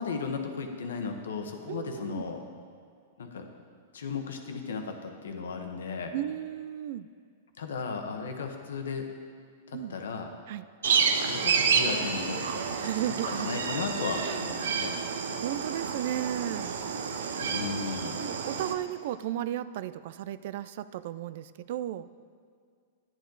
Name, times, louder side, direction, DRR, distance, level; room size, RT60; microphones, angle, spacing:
voice 1, 0.0-2.4 3.2-3.4 3.9-6.1 7.6-9.1 9.7-10.3 11.2-12.8 13.2-15.0 17.4-18.2, left 5 dB, 90° left, 4 dB, 1.1 m, -35 dB
voice 2, 1.7-2.3 6.1-7.1 9.7-10.0 10.5-10.6 12.7-13.5 14.2-14.4 15.4-16.7 18.2-22.1, right 12 dB, 60° right, 15 dB, 0.3 m, -34 dB
sound 1, 10.8-18.7, right 6 dB, 85° right, 0.8 m, -29 dB
10.0 x 9.2 x 4.0 m, 2.1 s
hypercardioid pair, 145°, 0 cm